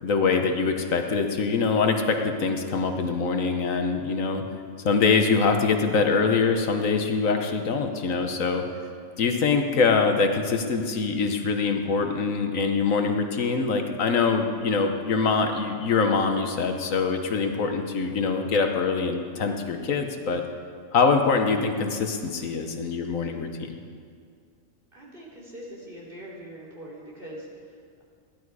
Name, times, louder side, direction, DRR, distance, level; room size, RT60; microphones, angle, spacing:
voice 1, 0.0-4.4 4.8-8.7 9.2-20.4 20.9-23.7, left 4 dB, 75° left, 5 dB, 1.4 m, -24 dB
voice 2, 24.9-28.0, right 1 dB, 40° right, -6 dB, 3.7 m, -43 dB
16.0 x 11.5 x 4.8 m, 2.2 s
omnidirectional pair, 1.4 m